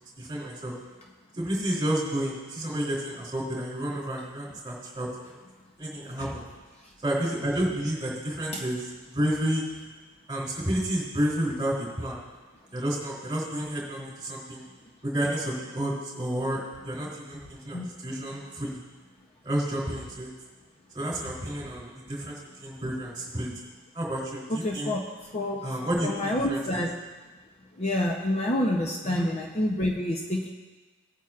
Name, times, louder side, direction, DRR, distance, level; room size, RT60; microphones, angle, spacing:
voice 1, 0.2-0.7 1.3-5.1 5.8-6.4 7.0-8.8 9.1-9.6 10.3-12.2 12.7-14.6 15.0-18.8 19.4-20.3 20.9-23.5 23.9-24.9 25.6-26.6 29.0-29.3, right 1 dB, 20° right, -4 dB, 3.1 m, -30 dB
voice 2, 24.5-25.1 25.3-26.9 27.8-30.5, left 1 dB, 30° left, 0 dB, 0.7 m, -28 dB
18.0 x 8.8 x 2.4 m, 1.3 s
head